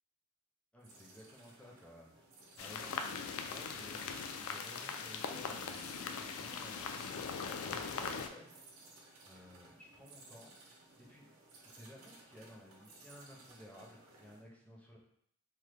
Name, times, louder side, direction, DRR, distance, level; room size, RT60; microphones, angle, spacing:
voice 1, 0.7-2.3 2.6-3.1 3.4-7.1 7.5-8.6 9.2-10.5 11.0-11.3 11.6-15.0, equal, 5° left, -3 dB, 0.5 m, -55 dB
sound 1, 0.8-14.4, right 2 dB, 85° right, 0.7 m, -60 dB
sound 2, 2.6-8.3, left 5 dB, 75° left, 0.3 m, -41 dB
3.0 x 2.1 x 3.2 m, 0.69 s
head